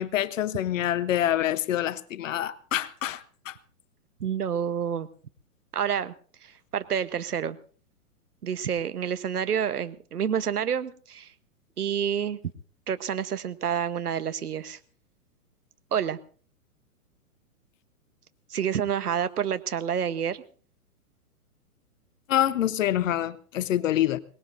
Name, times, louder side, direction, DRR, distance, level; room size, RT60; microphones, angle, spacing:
voice 1, 0.0-3.6 22.3-24.2, left 12 dB, 60° left, 1.0 m, -26 dB
voice 2, 4.2-5.1 5.7-6.1 6.4-7.6 8.4-11.3 11.8-12.4 12.9-14.8 15.9-16.2 18.5-20.4, right 8 dB, 85° right, 1.2 m, -28 dB
22.5 x 19.5 x 2.6 m
hypercardioid pair, 125°, 45 cm